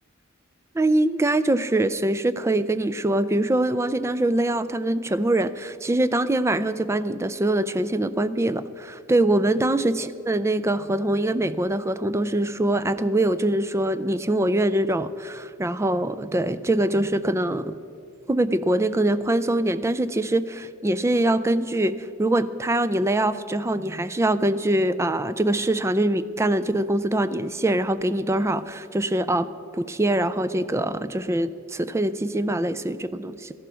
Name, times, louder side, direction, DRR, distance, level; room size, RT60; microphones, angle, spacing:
voice 1, 0.7-17.8 18.3-29.5 29.7-33.5, right 1 dB, 15° right, 14 dB, 0.3 m, -23 dB
13.5 x 11.5 x 6.2 m, 2.6 s
head